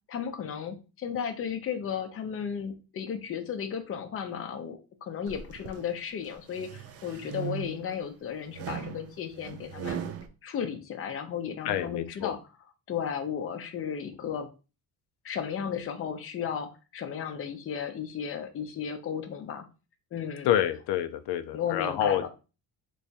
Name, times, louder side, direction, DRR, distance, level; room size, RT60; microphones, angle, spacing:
voice 1, 0.1-10.0 10.4-12.4 12.9-14.5 15.2-19.7 20.1-20.5 21.5-22.3, left 7 dB, 35° left, 6 dB, 0.6 m, -34 dB
sound 1, 5.3-5.8 6.3-8.0 8.5-10.3, right 8 dB, 40° right, 0.4 m, -38 dB
voice 2, 11.6-12.3 20.5-22.3, left 11 dB, 85° left, 10 dB, 0.5 m, -28 dB
3.4 x 3.1 x 2.7 m, 0.32 s
cardioid pair, 135°, 39 cm